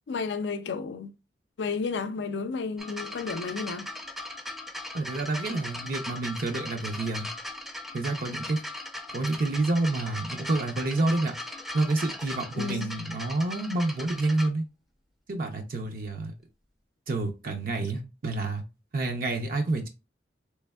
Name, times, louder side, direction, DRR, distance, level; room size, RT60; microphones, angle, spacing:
voice 1, 0.1-1.1 1.6-3.9 12.6-12.9, left 4 dB, 75° left, 0.4 m, -32 dB
sound 1, 2.8-14.5 15.4-15.5, left 1 dB, ahead, 0.5 m, -39 dB
voice 2, 4.9-7.3 7.9-8.6 9.1-11.4 11.7-14.6 15.3-16.3 17.1-18.6 18.9-19.9, right 2 dB, 55° right, 0.5 m, -28 dB
3.3 x 3.3 x 2.2 m
head